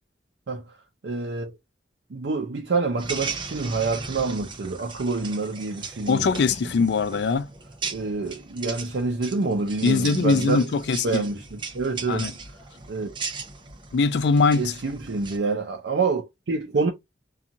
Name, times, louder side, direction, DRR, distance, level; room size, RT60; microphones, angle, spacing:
voice 1, 0.5-0.8 1.0-1.5 2.1-6.4 7.9-10.7 11.0-12.3 12.9-13.2 14.6-16.9, right 4 dB, 90° right, 0.5 m, -27 dB
sound 1, 3.0-15.4, right 4 dB, 30° right, 0.5 m, -37 dB
voice 2, 6.1-7.5 9.8-11.2 12.1-12.3 13.9-14.6, left 4 dB, 70° left, 0.4 m, -21 dB
2.6 x 2.3 x 2.8 m
head